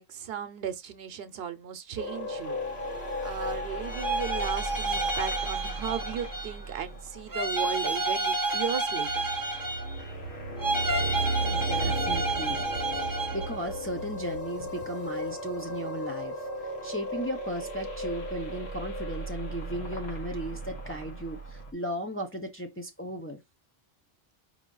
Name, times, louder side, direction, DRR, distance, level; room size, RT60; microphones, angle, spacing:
voice 1, 0.0-3.0 3.2-9.3, right 8 dB, 70° right, 0.9 m, -36 dB
sound 1, 2.0-8.7 9.1-21.7, right 1 dB, 80° left, 1.4 m, -35 dB
sound 2, 3.8-6.7 7.3-10.1 10.6-13.6, right 2 dB, 25° right, 0.7 m, -30 dB
voice 2, 11.4-12.6 13.0-16.5 16.8-23.4, equal, 15° left, 0.5 m, -36 dB
4.9 x 2.7 x 3.8 m
omnidirectional pair, 1.1 m